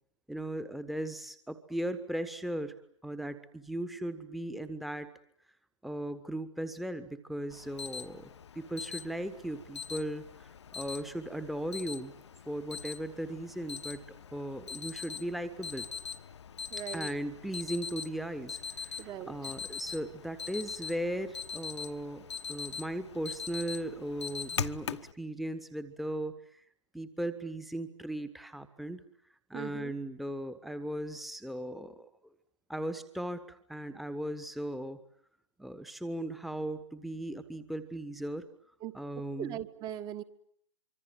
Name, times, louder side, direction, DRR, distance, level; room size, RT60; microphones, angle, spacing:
voice 1, 0.3-2.7 3.0-5.1 5.8-12.1 12.5-14.0 14.3-15.9 16.9-26.6 26.9-29.0 29.5-32.1 32.7-35.0 35.6-38.5 38.9-39.6, right 1 dB, ahead, 11 dB, 1.3 m, -37 dB
Alarm, 7.5-25.1, left 6 dB, 60° left, 1.2 m, -42 dB
voice 2, 16.7-17.1 19.0-19.3 29.5-29.9 38.8-38.9 39.4-40.2, right 11 dB, 25° right, 12 dB, 1.5 m, -39 dB
25.5 x 25.0 x 9.2 m, 0.66 s
figure-of-eight pair, 120°, 17 cm